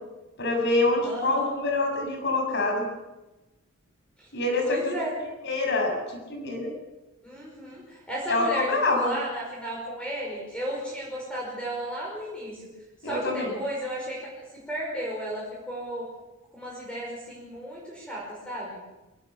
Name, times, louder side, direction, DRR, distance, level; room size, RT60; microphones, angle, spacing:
voice 1, 0.4-2.8 4.3-4.9 5.4-6.0 6.3-6.7 8.3-9.1 13.0-13.5, left 2 dB, 55° left, 3 dB, 7.0 m, -25 dB
voice 2, 1.0-1.4 4.2-4.3 4.6-5.2 7.2-12.7 13.0-16.1 16.5-18.8, right 1 dB, 5° left, -4 dB, 5.5 m, -34 dB
23.5 x 18.5 x 7.3 m, 1.0 s
head